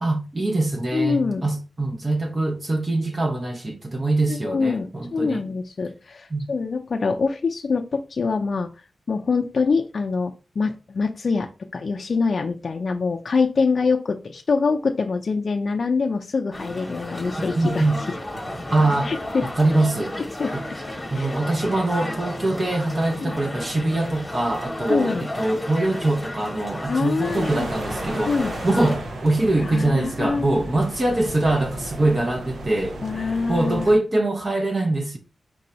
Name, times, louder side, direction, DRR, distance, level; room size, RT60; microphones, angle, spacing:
voice 1, 0.0-5.5 6.3-6.5 17.6-18.0 18.7-19.1 19.4-20.2 20.5-20.6 21.1-35.2, right 2 dB, 30° right, 0.7 m, -23 dB
voice 2, 0.9-1.5 4.3-8.7 9.1-17.8 19.0-19.5 20.4-20.5 21.2-21.3 23.2-23.3 24.9-25.3 26.9-27.7 28.3-28.5 29.7-30.6 33.0-33.9, left 4 dB, 50° left, 0.4 m, -24 dB
sound 1, 16.5-29.0, left 1 dB, 10° left, 1.2 m, -33 dB
sound 2, 27.2-34.0, right 1 dB, 85° right, 0.9 m, -35 dB
4.6 x 2.6 x 4.2 m
wide cardioid pair, 130°, 0 cm